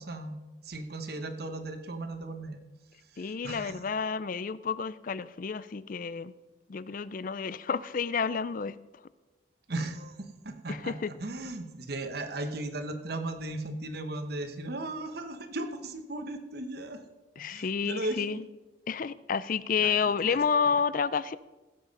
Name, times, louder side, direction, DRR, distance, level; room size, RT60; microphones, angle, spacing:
voice 1, 0.0-2.6 3.1-3.8 9.7-10.9 11.2-17.0 17.5-18.4 19.8-20.4, right 2 dB, 55° right, 7 dB, 1.1 m, -37 dB
voice 2, 3.2-6.3 6.7-8.8 10.7-11.1 17.4-18.4 18.9-21.4, left 6 dB, 45° left, 18 dB, 0.4 m, -30 dB
16.0 x 7.4 x 5.3 m, 1.1 s
head